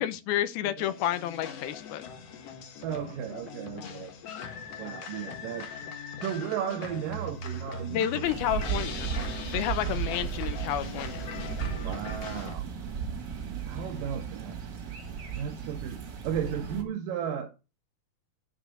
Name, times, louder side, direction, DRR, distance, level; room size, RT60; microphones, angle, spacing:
voice 1, 0.0-2.0 7.9-9.1 9.5-11.3, left 11 dB, 80° left, 2.6 m, -30 dB
sound 1, 0.8-12.5, left 7 dB, 55° left, 1.8 m, -41 dB
voice 2, 2.8-4.1 4.8-5.7 6.2-8.2 9.8-10.0 11.8-12.6 13.6-14.6 15.4-17.5, right 8 dB, 75° right, 2.2 m, -35 dB
sound 2, 6.9-9.8, right 6 dB, 25° left, 0.3 m, -42 dB
sound 3, 8.2-16.8, right 8 dB, 50° right, 1.3 m, -35 dB
9.9 x 4.1 x 6.6 m
omnidirectional pair, 4.4 m